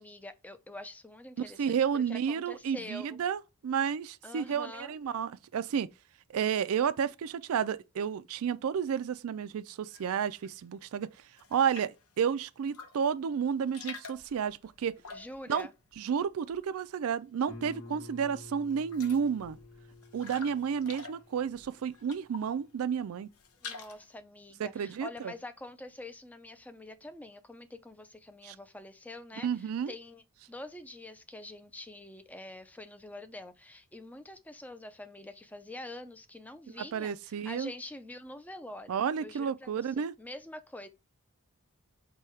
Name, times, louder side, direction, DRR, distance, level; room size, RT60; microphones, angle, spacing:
voice 1, 0.0-3.2 4.2-4.9 15.1-15.7 23.6-40.9, left 2 dB, 5° left, 0.4 m, -46 dB
voice 2, 1.6-5.9 6.3-11.1 11.5-15.0 15.5-15.7 16.0-19.6 20.1-23.3 24.6-25.3 28.4-28.6 29.4-29.9 36.9-37.7 38.9-40.1, right 7 dB, 70° right, 0.4 m, -31 dB
sound 1, 9.9-10.5 10.9-12.1 12.6-13.2 13.4-16.9 17.1-17.8 18.2-18.3 18.6-22.6 23.0-24.1, left 5 dB, 80° left, 0.8 m, -49 dB
Guitar, 17.5-22.9, left 2 dB, 60° left, 1.7 m, -51 dB
4.8 x 2.3 x 4.3 m
head